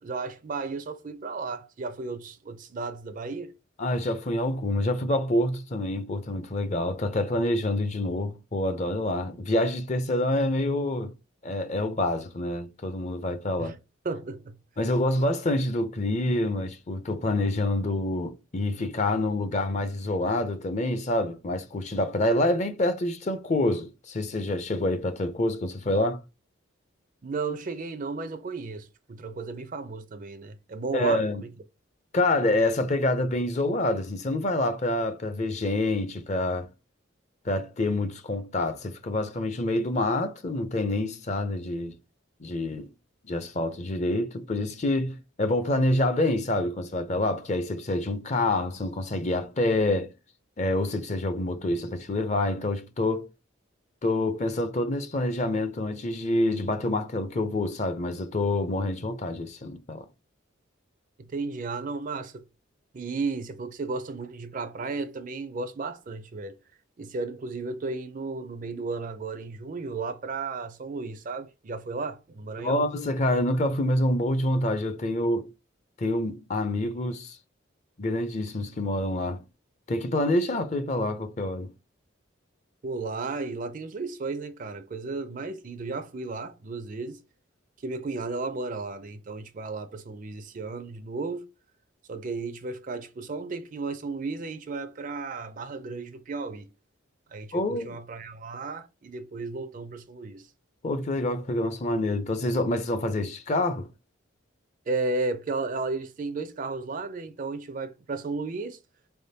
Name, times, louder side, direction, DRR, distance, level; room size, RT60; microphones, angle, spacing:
voice 1, 0.0-3.5 13.6-13.7 14.0-14.6 27.2-31.5 61.2-62.4 62.9-66.6 67.0-72.9 82.8-87.2 87.8-91.5 92.1-96.7 97.3-100.5 104.9-108.8, right 3 dB, 40° right, 0.4 m, -34 dB
voice 2, 3.8-11.1 11.4-13.8 14.8-26.2 30.9-31.4 32.1-36.7 37.4-41.9 42.4-42.9 43.2-50.1 50.6-53.3 54.0-60.1 72.6-75.5 76.0-77.4 78.0-79.4 79.9-81.7 97.5-98.0 100.8-103.9, left 1 dB, 35° left, 0.5 m, -27 dB
4.0 x 3.5 x 2.7 m
head